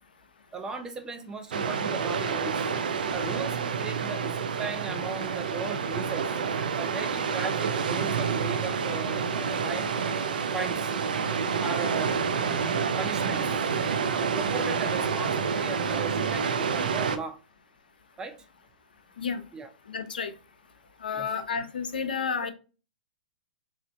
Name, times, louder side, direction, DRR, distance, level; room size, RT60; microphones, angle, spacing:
voice 1, 0.5-2.8 3.1-6.3 6.8-10.9 11.6-12.6 13.0-13.6 14.1-17.4 18.2-18.4 19.5-19.7 21.1-21.3, right 4 dB, 15° right, 0.5 m, -38 dB
sound 1, 1.5-17.2, right 6 dB, 70° right, 0.4 m, -28 dB
voice 2, 19.9-20.3 21.0-22.5, left 6 dB, 80° left, 0.6 m, -31 dB
4.3 x 2.5 x 2.3 m
hypercardioid pair, 115°, 5 cm